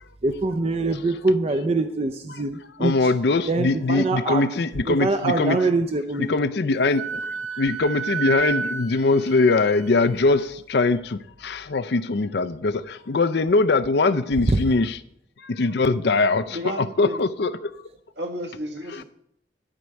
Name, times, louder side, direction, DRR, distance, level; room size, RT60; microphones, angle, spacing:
voice 1, 0.2-3.1 3.5-4.4 4.9-6.3 14.5-14.6, right 2 dB, 35° right, 7 dB, 0.5 m, -24 dB
voice 2, 2.8-5.6 6.2-15.0 15.4-17.7 18.9-19.0, left 3 dB, 60° left, 11 dB, 0.5 m, -22 dB
Wind instrument woodwind instrument, 6.9-10.4, right 6 dB, 90° right, 1.1 m, -31 dB
voice 3, 16.5-17.2 18.2-19.0, equal, 70° right, 3 dB, 1.6 m, -32 dB
12.5 x 4.5 x 6.4 m, 0.74 s
head